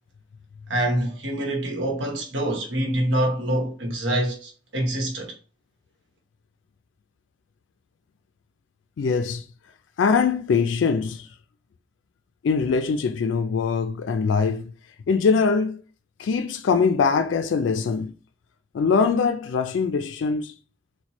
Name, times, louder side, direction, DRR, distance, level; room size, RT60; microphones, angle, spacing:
voice 1, 0.7-5.3, right 1 dB, 85° right, 1.0 m, -25 dB
voice 2, 9.0-9.4 10.0-11.3 12.4-14.7 15.1-15.8 16.2-18.1 18.7-20.5, left 5 dB, 80° left, 0.3 m, -22 dB
4.2 x 2.2 x 3.0 m
head